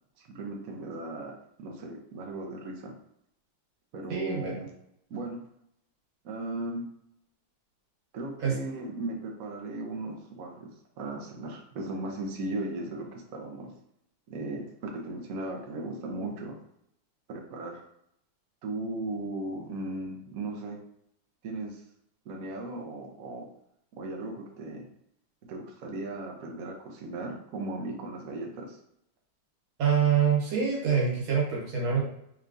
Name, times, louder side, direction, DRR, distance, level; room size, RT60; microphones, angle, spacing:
voice 1, 0.2-2.9 3.9-4.7 5.1-5.4 6.2-6.8 8.1-13.7 14.3-16.6 17.3-17.8 18.6-20.8 21.4-21.8 22.3-23.4 23.9-24.8 25.5-28.8, right 2 dB, 60° right, 1 dB, 0.9 m, -37 dB
voice 2, 4.1-4.5 8.4-8.5 29.8-32.0, right 7 dB, 85° right, -3 dB, 2.1 m, -25 dB
4.4 x 3.3 x 2.6 m, 0.75 s
omnidirectional pair, 2.1 m